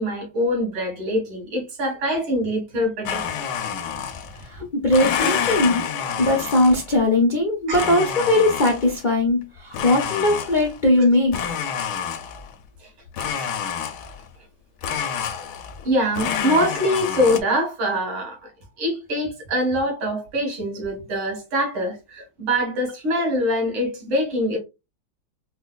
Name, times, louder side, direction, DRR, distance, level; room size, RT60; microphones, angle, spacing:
voice 1, 0.0-3.2 4.6-4.7 7.7-8.0 13.2-13.5 15.8-18.5 18.8-24.6, equal, 80° right, 2.4 m, -24 dB
Domestic sounds home sounds, 3.1-4.5 4.9-7.0 7.7-9.0 9.7-10.9 11.3-12.5 13.1-14.3 14.8-15.9 16.1-17.4, left 7 dB, 75° left, 1.0 m, -28 dB
voice 2, 4.4-5.8 6.2-11.4, left 1 dB, 90° left, 0.4 m, -19 dB
4.5 x 2.2 x 2.3 m
omnidirectional pair, 2.2 m